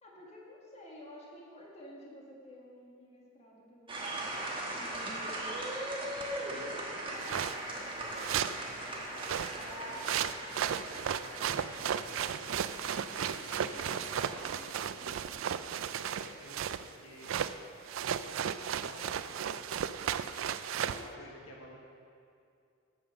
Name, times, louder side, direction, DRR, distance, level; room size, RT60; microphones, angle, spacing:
voice 1, 0.0-4.4 4.7-5.7 20.9-21.2, equal, 30° left, -4 dB, 1.9 m, -52 dB
sound 1, 3.9-15.6, right 1 dB, 25° right, 1.3 m, -40 dB
voice 2, 6.4-7.4 7.9-12.6 13.4-14.7 15.0-15.3 15.8-17.3 18.2-19.5 20.0-20.4 20.7-21.8, left 1 dB, 85° left, -1 dB, 1.5 m, -53 dB
sound 2, 7.2-7.6 8.2-8.6 9.2-16.9 17.2-17.6 17.9-21.1, right 8 dB, 70° right, 0.3 m, -35 dB
9.0 x 7.0 x 6.7 m, 2.4 s
head